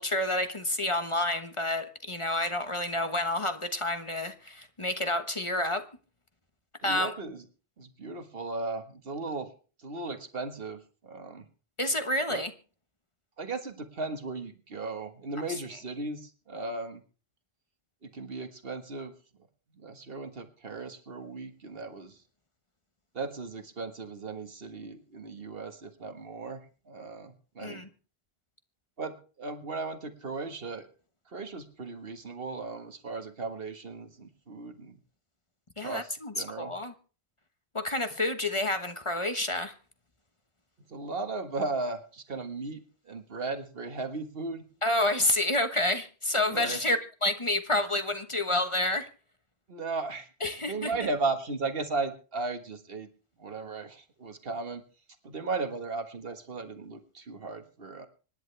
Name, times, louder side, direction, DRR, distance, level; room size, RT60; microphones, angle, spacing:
voice 1, 0.0-5.8 6.8-7.1 11.8-12.5 27.6-27.9 35.8-36.9 37.7-39.7 44.8-49.1 50.4-50.9, left 1 dB, 30° left, 1.3 m, -29 dB
voice 2, 6.8-7.5 7.8-9.5 9.8-11.5 12.3-12.4 13.4-17.0 18.0-19.1 19.7-22.2 23.1-26.6 26.9-27.9 29.0-30.9 31.3-35.0 35.8-36.7 40.9-44.7 46.5-46.8 49.7-53.1 53.4-54.8 55.2-58.1, right 3 dB, 60° right, 1.8 m, -36 dB
25.5 x 11.0 x 3.4 m
omnidirectional pair, 1.1 m